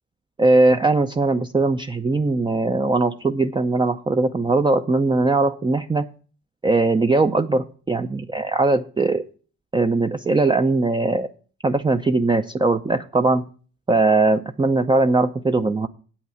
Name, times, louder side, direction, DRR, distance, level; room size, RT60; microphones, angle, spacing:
voice 1, 0.4-6.1 6.6-9.3 9.7-11.3 11.6-13.4 13.9-15.9, right 3 dB, 15° right, 7 dB, 0.5 m, -20 dB
8.3 x 5.8 x 7.7 m, 0.40 s
cardioid pair, 90°, 30 cm